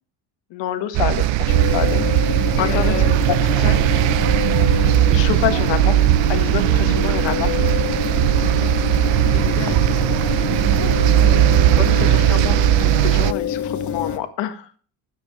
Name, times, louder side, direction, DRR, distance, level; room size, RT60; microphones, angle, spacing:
voice 1, 0.5-2.0 2.3-2.9 3.3-3.8 4.7-6.0 6.3-7.5 11.8-14.7, left 11 dB, 65° left, 8 dB, 1.6 m, -27 dB
sound 1, 0.9-13.3, right 15 dB, 70° right, 0.7 m, -18 dB
sound 2, 1.5-14.2, left 8 dB, 40° left, 1.4 m, -26 dB
voice 2, 2.5-3.3 3.6-3.8 8.4-8.7 9.0-11.0, left 13 dB, 85° left, 4 dB, 1.3 m, -32 dB
13.5 x 9.5 x 3.2 m, 0.41 s
cardioid pair, 100°, 46 cm